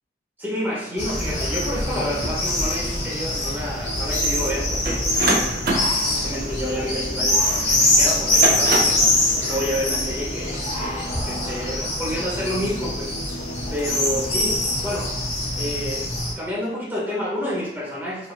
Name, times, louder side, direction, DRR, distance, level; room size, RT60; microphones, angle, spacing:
voice 1, 0.4-5.5 6.2-13.1 13.7-15.2 15.6-16.1 16.4-18.3, equal, 10° right, -6 dB, 1.9 m, -29 dB
sound 1, 1.0-16.3, left 1 dB, 40° left, 1.8 m, -24 dB
sound 2, 3.8-16.4, equal, 85° left, 0.8 m, -39 dB
sound 3, 4.8-7.6 8.2-9.1, right 2 dB, 55° right, 1.3 m, -25 dB
9.3 x 4.4 x 2.5 m, 0.81 s
head